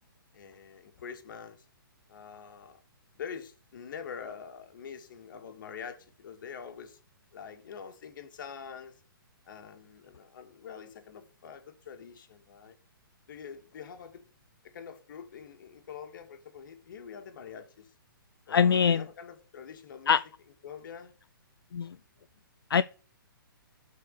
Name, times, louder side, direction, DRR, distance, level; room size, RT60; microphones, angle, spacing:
voice 1, 0.3-1.7 2.1-2.8 3.2-7.0 7.3-8.9 9.5-12.8 13.3-14.3 14.6-17.9 18.5-20.2 20.6-21.1, left 7 dB, 60° left, 2.1 m, -45 dB
voice 2, 18.5-19.0 20.1-20.2 21.7-21.9 22.7-22.8, left 7 dB, 85° left, 0.5 m, -22 dB
6.8 x 4.7 x 6.6 m
hypercardioid pair, 140°, 12 cm